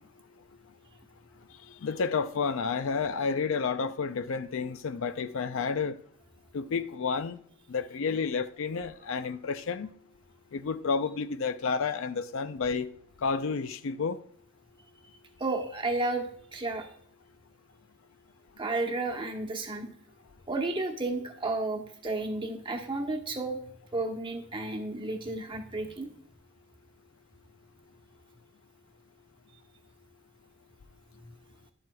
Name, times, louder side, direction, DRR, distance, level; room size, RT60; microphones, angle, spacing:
voice 1, 1.8-6.0 6.5-7.4 7.7-9.9 10.5-12.9 13.2-14.2, left 5 dB, 65° left, 0.5 m, -30 dB
voice 2, 15.4-16.9 18.6-19.9 20.5-23.6 23.9-26.1, right 2 dB, 25° right, 1.1 m, -32 dB
10.5 x 7.8 x 2.3 m
head